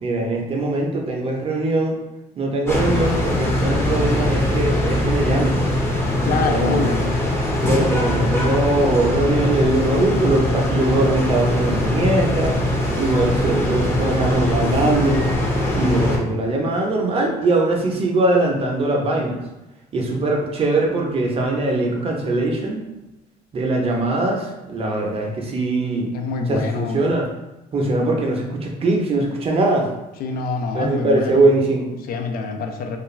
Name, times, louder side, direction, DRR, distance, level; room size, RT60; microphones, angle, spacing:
voice 1, 0.0-2.0 2.4-5.6 6.3-6.9 7.7-12.6 13.0-15.3 15.7-19.4 19.9-22.8 23.5-26.1 26.5-27.3 27.7-29.9 30.7-31.9, right 2 dB, 35° right, 0 dB, 0.6 m, -21 dB
sound 1, 2.7-16.2, left 1 dB, 15° left, 0.6 m, -21 dB
voice 2, 6.2-7.0 26.1-27.0 30.2-31.5 32.1-33.0, left 4 dB, 60° left, 4 dB, 0.4 m, -25 dB
2.4 x 2.2 x 3.1 m, 1.0 s
cardioid pair, 110°, 17 cm